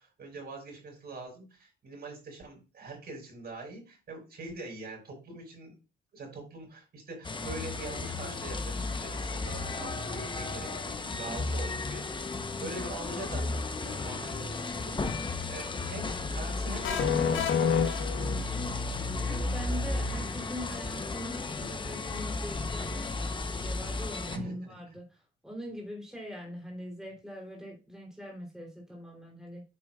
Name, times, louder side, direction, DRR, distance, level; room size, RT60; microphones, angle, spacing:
voice 1, 0.0-5.8 6.1-15.1 15.5-18.2 24.3-24.7, right 2 dB, 50° right, 0 dB, 5.4 m, -43 dB
sound 1, 7.2-24.4, left 3 dB, 25° left, 0.9 m, -34 dB
sound 2, 16.8-18.8, left 7 dB, 80° left, 1.4 m, -28 dB
voice 2, 19.2-23.1 23.4-29.6, equal, 5° right, -1 dB, 3.4 m, -42 dB
9.0 x 8.4 x 2.4 m, 0.30 s
cardioid pair, 90°, 20 cm